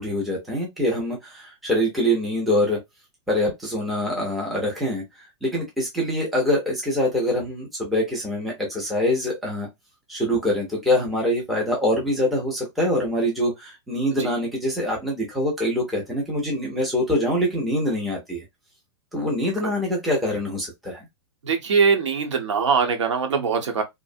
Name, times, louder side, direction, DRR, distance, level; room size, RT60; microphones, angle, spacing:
voice 1, 0.0-2.8 3.3-5.0 5.4-9.7 10.1-18.4 19.1-21.1, left 1 dB, ahead, 0.4 m, -24 dB
voice 2, 21.4-23.8, right 5 dB, 85° right, 0.9 m, -22 dB
2.6 x 2.0 x 2.4 m
hypercardioid pair, 175°, 15 cm